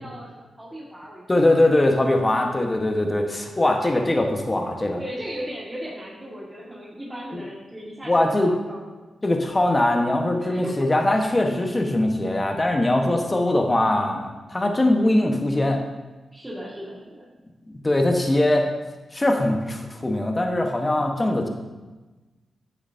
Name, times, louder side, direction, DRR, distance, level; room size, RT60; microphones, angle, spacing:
voice 1, 0.0-1.5 2.4-2.6 4.8-9.0 10.4-11.0 16.3-17.3, equal, 15° right, -6 dB, 1.9 m, -37 dB
voice 2, 1.3-5.0 7.3-7.4 8.1-8.5 9.2-15.8 17.8-18.7 19.1-21.5, left 1 dB, 25° left, 3 dB, 1.2 m, -21 dB
9.8 x 6.9 x 2.8 m, 1.2 s
cardioid pair, 50°, 0 cm